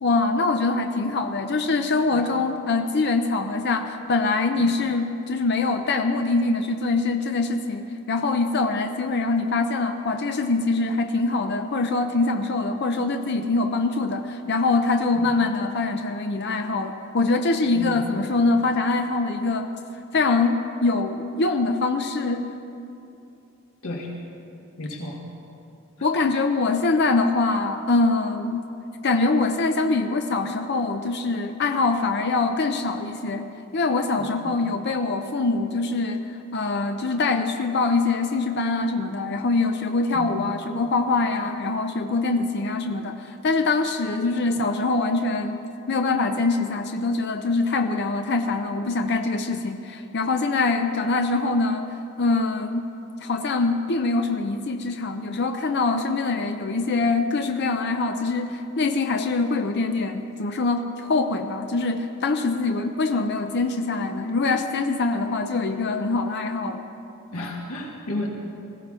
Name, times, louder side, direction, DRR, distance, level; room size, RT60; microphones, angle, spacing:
voice 1, 0.0-19.7 20.1-22.4 26.0-28.7 29.0-52.9 53.2-66.9, left 3 dB, 50° left, 5 dB, 0.6 m, -24 dB
voice 2, 24.8-25.2 34.4-34.5 40.1-40.3 67.3-68.3, left 1 dB, 85° left, -1 dB, 1.7 m, -32 dB
20.0 x 15.5 x 3.7 m, 2.7 s
head